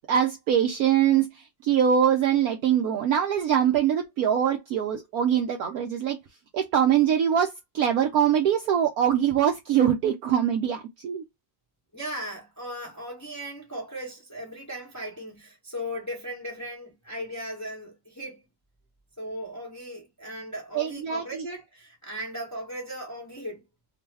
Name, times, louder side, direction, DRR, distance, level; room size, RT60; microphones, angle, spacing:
voice 1, 0.1-6.2 6.5-11.2 20.7-21.4, right 9 dB, 70° right, 0.9 m, -23 dB
voice 2, 11.9-18.4 19.2-23.6, equal, 15° left, 0.7 m, -37 dB
3.1 x 2.1 x 3.2 m
omnidirectional pair, 2.0 m